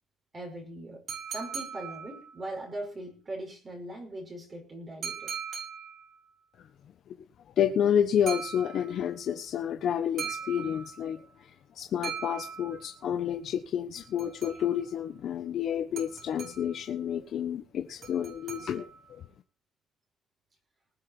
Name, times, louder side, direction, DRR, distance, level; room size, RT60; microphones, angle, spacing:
voice 1, 0.3-1.0 1.3-5.3, right 1 dB, 25° right, 5.6 m, -40 dB
sound 1, 1.1-2.6 5.0-6.2 8.3-9.1 10.2-11.2 12.0-13.0 14.0-14.9 16.0-16.9 18.0-19.1, right 7 dB, 45° right, 7.5 m, -40 dB
voice 2, 7.6-11.5 11.7-19.2, left 9 dB, 55° left, 1.3 m, -30 dB
20.0 x 7.6 x 5.6 m
cardioid pair, 165°, 0 cm